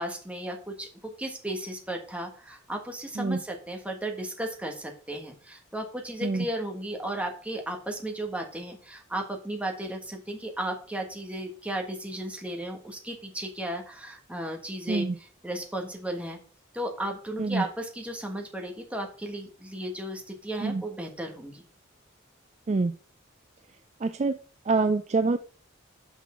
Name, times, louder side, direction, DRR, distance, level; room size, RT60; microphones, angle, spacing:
voice 1, 0.0-16.4 16.7-21.7, right 1 dB, 5° right, 2 dB, 1.5 m, -35 dB
voice 2, 24.0-24.4 24.7-25.4, right 3 dB, 35° right, 9 dB, 0.4 m, -25 dB
6.1 x 5.6 x 5.6 m, 0.42 s
head